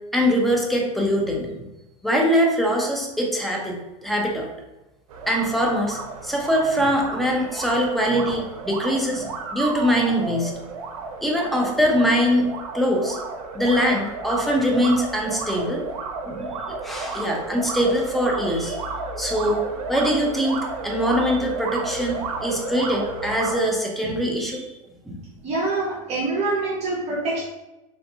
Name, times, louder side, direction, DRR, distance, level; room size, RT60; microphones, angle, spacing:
voice 1, 0.1-1.6 2.0-4.5 5.3-9.3 9.5-10.5 11.2-12.5 12.7-13.2 13.5-15.8 16.3-18.8 19.2-19.6 19.9-24.7 25.1-25.2, equal, ahead, -1 dB, 0.6 m, -22 dB
sound 1, 5.1-23.6, right 4 dB, 80° right, 0.5 m, -32 dB
voice 2, 25.4-27.4, right 3 dB, 40° right, -6 dB, 0.8 m, -25 dB
3.4 x 2.5 x 2.6 m, 0.99 s
supercardioid pair, 120°, 18 cm